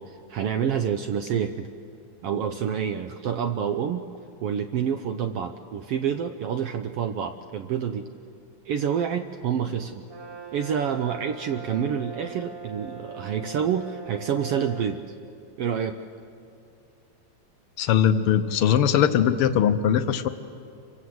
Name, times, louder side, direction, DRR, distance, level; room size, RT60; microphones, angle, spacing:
voice 1, 0.0-1.7 2.2-4.1 4.4-8.0 8.6-10.1 10.5-15.0 15.6-16.0, right 8 dB, 75° right, 8 dB, 1.4 m, -28 dB
Brass instrument, 10.1-15.0, right 4 dB, 50° right, 2.6 m, -41 dB
voice 2, 17.8-20.3, left 9 dB, 75° left, 10 dB, 1.2 m, -20 dB
26.5 x 24.5 x 7.9 m, 2.6 s
omnidirectional pair, 3.4 m